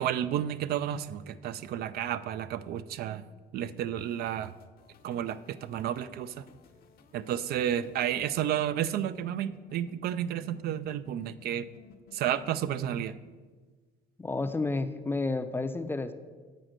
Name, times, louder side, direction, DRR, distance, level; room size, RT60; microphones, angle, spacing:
voice 1, 0.0-3.3 3.5-4.5 5.0-6.5 7.1-11.7 12.1-13.1, right 10 dB, 65° right, 13 dB, 0.4 m, -31 dB
sound 1, 4.0-13.1, left 5 dB, 60° left, 0.8 m, -56 dB
voice 2, 14.2-16.1, left 3 dB, 15° left, 10 dB, 0.5 m, -31 dB
7.6 x 4.9 x 6.5 m, 1.4 s
cardioid pair, 110°, 17 cm